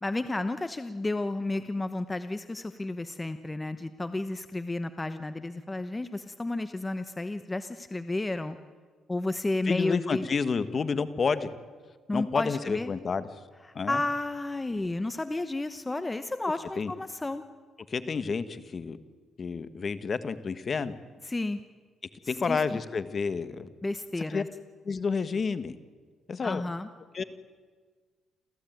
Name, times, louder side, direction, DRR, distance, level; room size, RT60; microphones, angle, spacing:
voice 1, 0.0-8.6 9.1-10.2 12.1-12.9 13.9-17.4 21.3-21.6 22.5-22.8 23.8-24.5 26.4-26.9, left 2 dB, 15° left, 11 dB, 0.9 m, -32 dB
voice 2, 9.7-11.5 12.1-13.3 13.7-14.0 16.8-16.9 17.9-19.0 19.4-20.9 22.3-23.7 24.3-24.4 24.8-25.8 26.3-26.6 27.1-27.2, left 5 dB, 40° left, 13 dB, 1.5 m, -29 dB
28.0 x 15.0 x 9.3 m, 1.5 s
cardioid pair, 90°, 0 cm